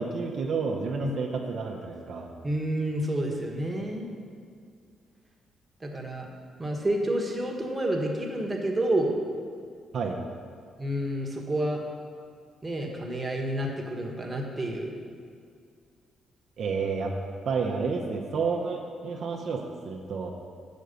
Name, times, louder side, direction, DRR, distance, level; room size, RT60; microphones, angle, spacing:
voice 1, 0.0-2.3 9.9-10.2 16.6-17.1 17.5-20.3, right 4 dB, 60° right, 0 dB, 0.7 m, -30 dB
voice 2, 2.4-4.1 5.8-6.3 6.6-9.1 10.8-11.8 12.6-15.0, right 1 dB, 20° right, 0 dB, 1.2 m, -29 dB
6.4 x 5.1 x 6.8 m, 2.2 s
cardioid pair, 90°, 0 cm